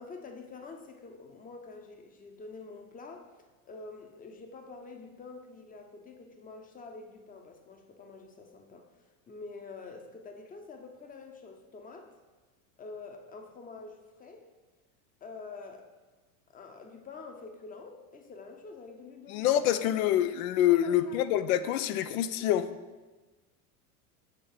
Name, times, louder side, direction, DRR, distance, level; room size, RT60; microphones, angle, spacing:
voice 1, 0.0-3.3 3.6-12.1 12.8-14.4 15.2-15.9 16.5-19.5 20.7-21.2, left 4 dB, 20° left, 4 dB, 0.8 m, -47 dB
voice 2, 19.3-22.7, left 11 dB, 65° left, 13 dB, 0.6 m, -26 dB
6.9 x 3.4 x 5.4 m, 1.2 s
hypercardioid pair, 105°, 45 cm